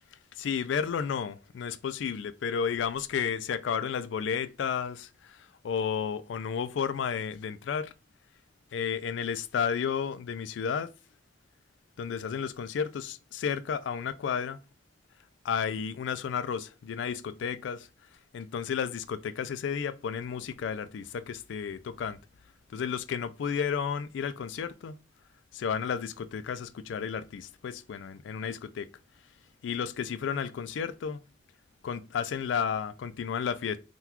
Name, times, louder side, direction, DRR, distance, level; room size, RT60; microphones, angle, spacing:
voice 1, 0.3-7.9 8.7-10.9 12.0-14.6 15.4-17.9 18.3-22.2 22.7-25.0 25.5-28.9 29.6-31.2 31.8-33.8, left 7 dB, 90° left, 0.3 m, -32 dB
3.7 x 2.3 x 2.9 m
head